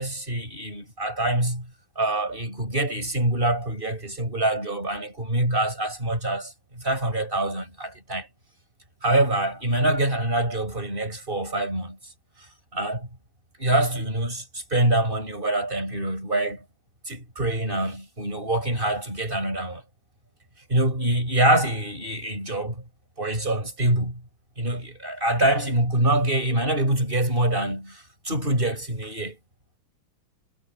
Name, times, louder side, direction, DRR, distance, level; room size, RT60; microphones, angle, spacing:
voice 1, 0.0-1.7 2.0-8.3 9.0-12.0 12.7-13.1 13.6-16.6 17.1-19.8 20.7-22.8 23.2-24.2 24.6-29.4, right 1 dB, 20° right, 7.4 m, -25 dB
omnidirectional pair, 2.4 m